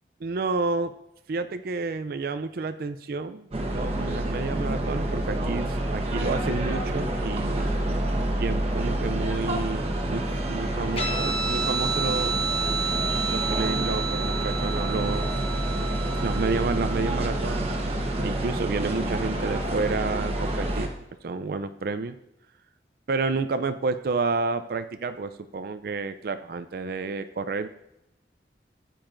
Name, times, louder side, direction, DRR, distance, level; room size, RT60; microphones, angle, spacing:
voice 1, 0.2-0.9 1.3-7.7 8.4-12.4 13.3-15.3 16.2-17.7 18.2-21.0 21.2-22.2 23.1-27.7, right 4 dB, 55° right, 11 dB, 0.4 m, -30 dB
sound 1, 3.5-20.9, right 1 dB, 35° right, 1.2 m, -28 dB
Guitar, 11.0-17.9, right 4 dB, 30° left, 1.1 m, -31 dB
13.0 x 9.1 x 2.5 m, 0.82 s
head